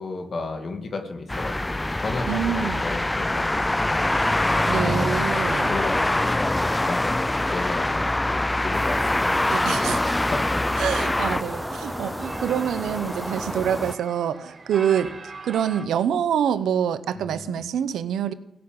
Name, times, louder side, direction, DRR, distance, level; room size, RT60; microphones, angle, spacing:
voice 1, 0.0-4.5 5.3-9.5 9.9-10.6 17.1-17.6, left 3 dB, 60° left, 5 dB, 2.4 m, -34 dB
sound 1, 1.3-11.4, left 1 dB, 20° left, 0.4 m, -24 dB
voice 2, 2.3-2.8 4.7-5.8 9.5-10.2 10.8-15.1 15.4-18.3, right 9 dB, 85° right, 14 dB, 0.9 m, -26 dB
sound 2, 8.7-14.0, equal, ahead, 0.9 m, -32 dB
sound 3, 10.7-15.9, right 3 dB, 50° right, 1.9 m, -42 dB
16.5 x 7.0 x 9.0 m, 0.86 s
supercardioid pair, 50°, 0 cm